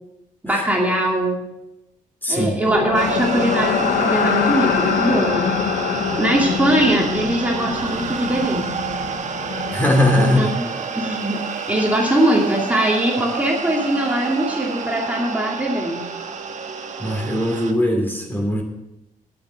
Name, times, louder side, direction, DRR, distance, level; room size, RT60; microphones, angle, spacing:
voice 1, 0.4-1.4 2.3-5.6 6.2-8.7 10.1-10.7 10.9-16.1, right 1 dB, 10° right, -2 dB, 2.4 m, -21 dB
voice 2, 2.2-2.6 9.7-10.5 17.0-18.6, left 1 dB, 15° left, 2 dB, 2.7 m, -20 dB
sound 1, 2.6-10.6, left 8 dB, 85° left, 0.8 m, -24 dB
sound 2, 2.9-17.7, right 6 dB, 55° right, 1.3 m, -29 dB
9.8 x 8.5 x 6.3 m, 0.90 s
cardioid pair, 95°, 14 cm